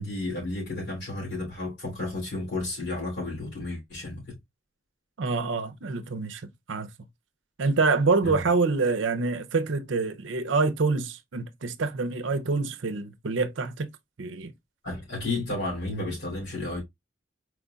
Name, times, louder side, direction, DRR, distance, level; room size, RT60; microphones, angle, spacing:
voice 1, 0.0-4.4 8.2-8.4 14.8-16.8, left 2 dB, 60° left, 3.0 m, -32 dB
voice 2, 5.2-6.4 6.7-6.9 7.6-13.9 14.2-14.5, right 4 dB, 75° right, 0.6 m, -26 dB
4.6 x 3.9 x 2.3 m
head